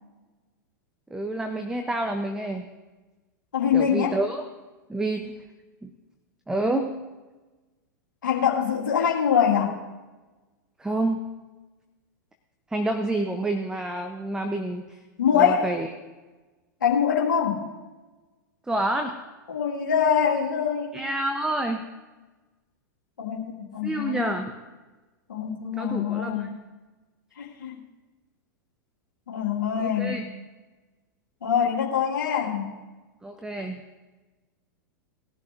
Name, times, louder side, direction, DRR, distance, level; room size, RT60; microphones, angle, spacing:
voice 1, 1.1-2.6 3.7-4.4 4.9-5.3 5.8-5.9 6.5-7.0 10.8-11.3 12.7-15.0 15.3-15.9 18.7-19.2 20.9-21.9 23.8-24.5 25.8-26.5 29.8-30.3 33.2-33.8, right 1 dB, 5° right, 6 dB, 0.8 m, -28 dB
voice 2, 3.5-4.1 8.2-9.8 15.2-15.7 16.8-17.7 19.5-21.0 23.2-24.3 25.3-26.5 27.4-27.8 29.3-30.2 31.4-32.8, left 8 dB, 75° left, -2 dB, 2.1 m, -24 dB
19.5 x 11.5 x 2.7 m, 1.2 s
figure-of-eight pair, 100°, 11 cm